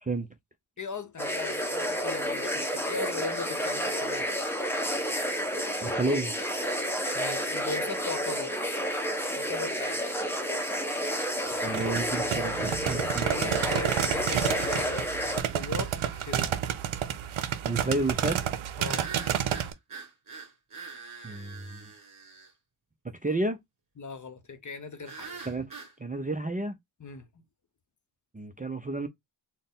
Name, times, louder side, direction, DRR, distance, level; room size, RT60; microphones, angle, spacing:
voice 1, 0.8-4.3 7.1-8.6 9.4-10.0 13.2-15.0 15.4-16.6 18.8-19.1 24.0-25.4 27.0-27.3, left 4 dB, 40° left, 0.7 m, -38 dB
sound 1, 1.2-15.4, equal, 5° left, 0.9 m, -30 dB
voice 2, 5.8-6.3 11.6-13.6 17.6-18.4 21.2-21.9 23.2-23.6 25.5-25.7 26.0-26.7 28.3-29.1, right 2 dB, 20° right, 0.4 m, -31 dB
sound 2, 11.5-19.7, right 10 dB, 75° right, 0.7 m, -30 dB
sound 3, 14.5-16.5 18.8-22.5 25.1-25.9, right 5 dB, 40° right, 2.1 m, -44 dB
4.2 x 2.1 x 3.5 m
wide cardioid pair, 100°, 48 cm